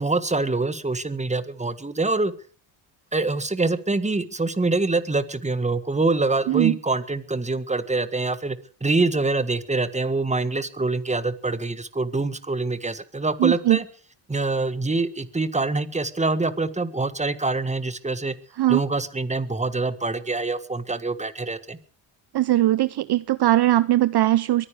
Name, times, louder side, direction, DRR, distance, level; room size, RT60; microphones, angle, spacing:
voice 1, 0.0-2.3 3.1-13.8 14.3-18.3 18.7-21.8, right 3 dB, 15° right, 13 dB, 1.7 m, -25 dB
voice 2, 6.5-6.8 13.4-13.8 18.6-18.8 22.3-24.7, right 14 dB, 50° right, 17 dB, 0.7 m, -20 dB
23.5 x 10.0 x 5.0 m, 0.42 s
supercardioid pair, 70°, 50 cm